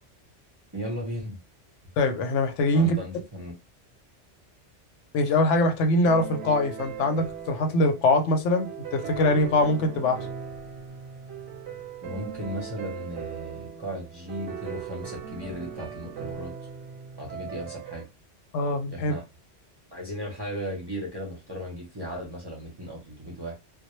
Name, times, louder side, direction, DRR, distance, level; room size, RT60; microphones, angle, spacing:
voice 1, 0.7-1.4 2.7-3.5 12.0-16.5 17.2-18.1 18.9-19.2 19.9-23.6, equal, 30° right, 0.5 m, -36 dB
voice 2, 2.0-3.0 5.1-10.2 18.5-19.1, left 2 dB, 80° left, 0.9 m, -23 dB
sound 1, 6.0-18.0, right 7 dB, 90° right, 0.9 m, -39 dB
2.1 x 2.0 x 3.0 m
omnidirectional pair, 1.2 m